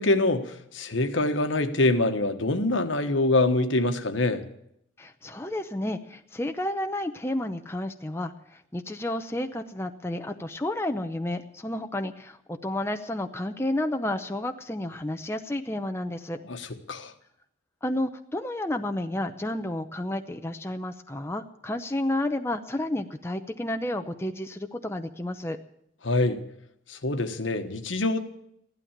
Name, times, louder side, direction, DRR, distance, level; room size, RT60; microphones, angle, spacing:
voice 1, 0.0-4.4 16.4-17.1 26.0-26.4 26.9-28.2, left 2 dB, 75° left, 1.3 m, -25 dB
voice 2, 5.0-16.4 17.8-25.6, left 1 dB, 15° left, 0.6 m, -31 dB
15.0 x 12.0 x 7.3 m
head